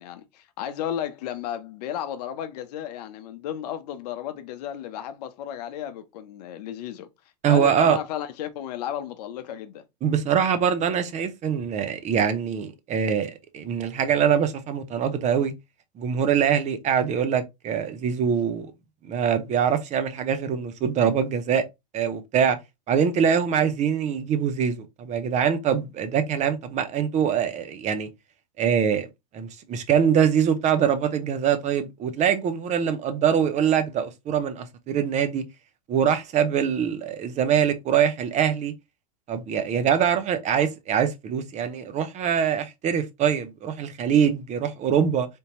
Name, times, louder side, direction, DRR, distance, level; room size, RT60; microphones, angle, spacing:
voice 1, 0.0-7.1 7.5-9.8, left 10 dB, 70° left, 0.6 m, -33 dB
voice 2, 7.4-8.0 10.0-15.5 16.0-18.7 19.0-21.6 21.9-22.6 22.9-28.1 28.6-29.1 29.3-35.4 35.9-38.7 39.3-45.3, right 8 dB, 35° right, 0.7 m, -23 dB
3.5 x 2.7 x 2.9 m
hypercardioid pair, 110°, 21 cm